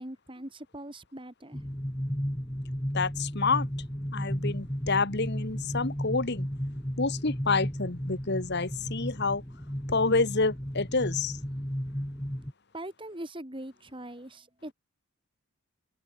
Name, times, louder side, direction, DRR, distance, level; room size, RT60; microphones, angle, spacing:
voice 1, 0.0-1.6 12.7-14.7, right 1 dB, 25° right, 3.4 m, -41 dB
sound 1, 1.5-12.5, equal, 15° left, 2.8 m, -34 dB
voice 2, 2.9-3.7 4.1-6.5 7.0-9.4 9.9-11.4, left 3 dB, 50° left, 1.6 m, -28 dB
head